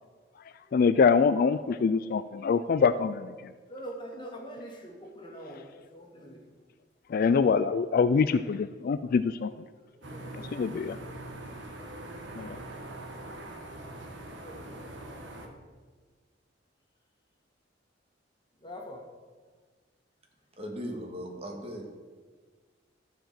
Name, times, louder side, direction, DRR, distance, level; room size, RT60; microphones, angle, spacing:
voice 1, 0.7-3.3 7.1-9.5 10.5-11.0 12.4-12.6, left 5 dB, 50° left, 12 dB, 0.3 m, -24 dB
voice 2, 3.7-5.6 5.9-6.4 10.1-10.5 14.4-14.9 15.2-15.5 18.6-19.0, equal, 25° left, 0 dB, 1.8 m, -43 dB
sound 1, 10.0-15.5, right 1 dB, 70° right, 1.5 m, -42 dB
voice 3, 20.6-21.9, equal, 30° right, 1 dB, 1.8 m, -38 dB
13.0 x 5.0 x 7.4 m, 1.5 s
head